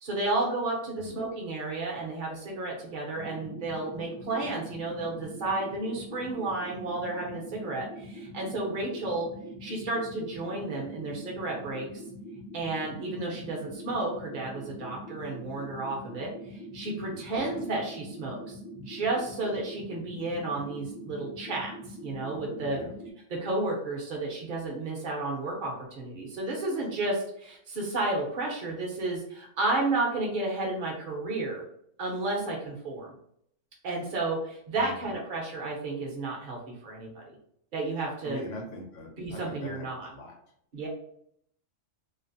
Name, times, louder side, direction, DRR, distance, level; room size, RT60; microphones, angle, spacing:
voice 1, 0.0-9.3 9.6-11.9 12.5-21.7 22.0-22.8 23.3-31.6 32.0-33.1 33.8-37.2 37.7-38.4 39.2-40.1 40.7-40.9, right 2 dB, 45° right, -2 dB, 0.8 m, -32 dB
sound 1, 3.1-23.1, equal, 35° left, 0.6 m, -43 dB
voice 2, 17.1-17.6 22.5-22.9 34.7-35.1 38.2-40.3, left 1 dB, 70° left, -1 dB, 1.1 m, -42 dB
3.1 x 2.0 x 2.5 m, 0.69 s
omnidirectional pair, 1.4 m